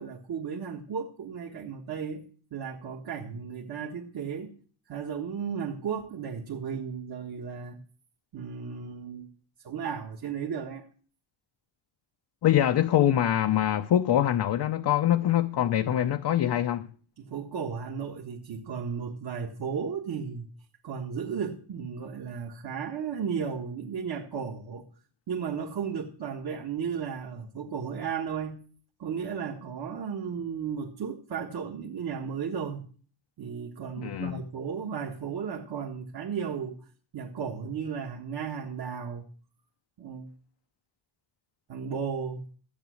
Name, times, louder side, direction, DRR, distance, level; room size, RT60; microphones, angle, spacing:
voice 1, 0.0-2.2 2.5-4.5 4.9-7.8 8.3-9.3 9.6-10.8 17.2-20.5 20.8-24.8 25.3-28.6 29.0-32.9 33.4-36.8 37.1-39.2 40.0-40.3 41.7-42.4, right 6 dB, 50° right, 1.6 m, -34 dB
voice 2, 12.4-16.9 34.0-34.4, left 11 dB, 55° left, 0.7 m, -24 dB
13.5 x 8.1 x 6.4 m
cardioid pair, 130°, 48 cm